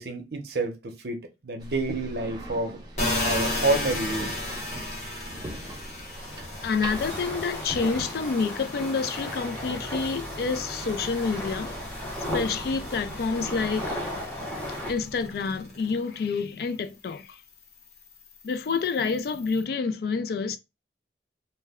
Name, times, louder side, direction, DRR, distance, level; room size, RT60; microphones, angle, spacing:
voice 1, 0.0-2.8 3.2-4.4, right 2 dB, 65° right, 0.6 m, -29 dB
sound 1, 1.6-8.2, right 1 dB, 25° right, 0.7 m, -40 dB
sound 2, 3.0-16.3 16.7-19.6, left 1 dB, 40° left, 0.8 m, -36 dB
sound 3, 5.9-14.9, left 1 dB, 10° left, 0.6 m, -36 dB
voice 2, 6.6-11.7 12.3-13.9 14.9-17.4 18.4-20.6, left 5 dB, 60° left, 0.3 m, -28 dB
2.2 x 2.1 x 3.4 m
head